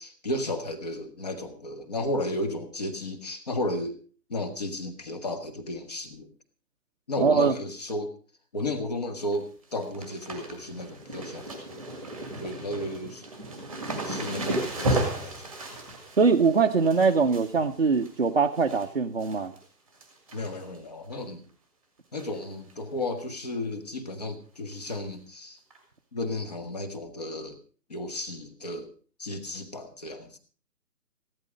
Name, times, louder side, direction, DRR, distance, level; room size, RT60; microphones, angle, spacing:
voice 1, 0.0-4.0 4.3-6.3 7.1-8.1 8.5-11.8 12.4-13.2 14.0-15.4 20.3-21.4 22.1-25.6 26.1-27.6 27.9-28.9 29.2-30.4, left 1 dB, 25° left, 8 dB, 1.3 m, -33 dB
voice 2, 7.2-7.5 16.2-19.5, right 5 dB, 40° right, 1 dB, 0.8 m, -22 dB
sound 1, 9.1-9.4 9.6-18.9 19.2-19.6 19.9-20.8 21.1-21.2 22.2-22.4 22.7-22.8 23.2-23.3 24.9-25.0 25.7-25.8, right 1 dB, ahead, 1.7 m, -34 dB
15.5 x 12.5 x 5.1 m, 0.41 s
hypercardioid pair, 175°, 49 cm